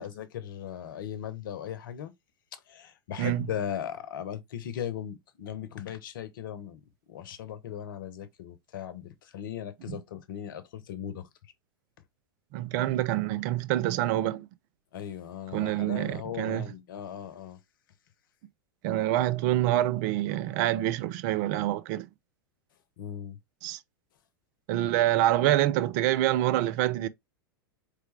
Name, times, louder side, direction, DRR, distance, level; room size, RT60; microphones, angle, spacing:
voice 1, 0.0-2.1 2.5-6.8 7.1-11.3 14.9-17.6 23.0-23.4, left 9 dB, 65° left, 0.9 m, -38 dB
voice 2, 12.5-14.5 15.5-16.7 18.8-22.1 23.6-23.8 24.7-27.1, right 14 dB, 50° right, 0.5 m, -26 dB
4.6 x 3.3 x 3.3 m
figure-of-eight pair, 95°, 12 cm